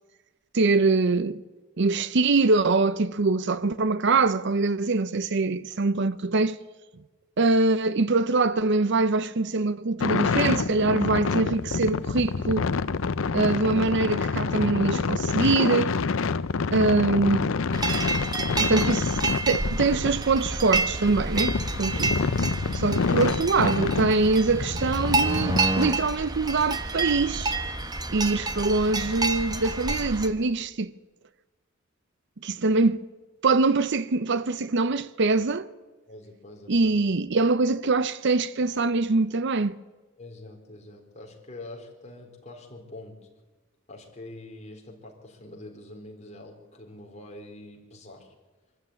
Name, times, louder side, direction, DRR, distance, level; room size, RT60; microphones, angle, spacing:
voice 1, 0.5-1.4 1.8-6.6 7.4-12.7 13.3-15.9 16.7-17.5 18.6-19.2 19.5-22.2 22.7-27.6 28.1-30.9 32.4-33.0 33.4-35.7 36.7-39.8, right 3 dB, 55° right, 0.7 m, -23 dB
sound 1, 10.0-25.6, left 4 dB, 70° left, 0.6 m, -27 dB
sound 2, 17.7-30.3, right 2 dB, 20° right, 1.1 m, -29 dB
voice 2, 36.1-36.9 40.2-43.3 43.9-48.3, left 2 dB, 35° left, 3.9 m, -45 dB
25.0 x 13.5 x 9.6 m
head